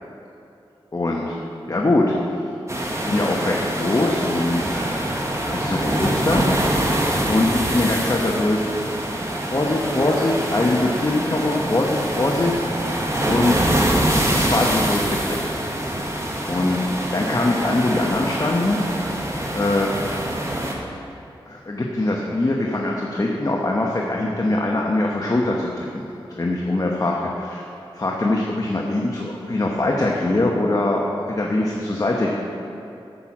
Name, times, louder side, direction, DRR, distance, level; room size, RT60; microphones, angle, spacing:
voice 1, 0.9-1.4 1.7-2.1 2.9-5.1 5.5-6.4 7.3-8.7 9.5-12.6 13.3-13.7 14.1-15.5 16.5-18.8 19.5-19.9 21.5-26.0 26.3-27.7 27.9-32.3, left 2 dB, 40° left, -2 dB, 1.0 m, -22 dB
sound 1, 2.7-20.7, right 1 dB, 30° right, 1.5 m, -24 dB
10.5 x 7.6 x 6.0 m, 2.8 s
wide cardioid pair, 75°, 9 cm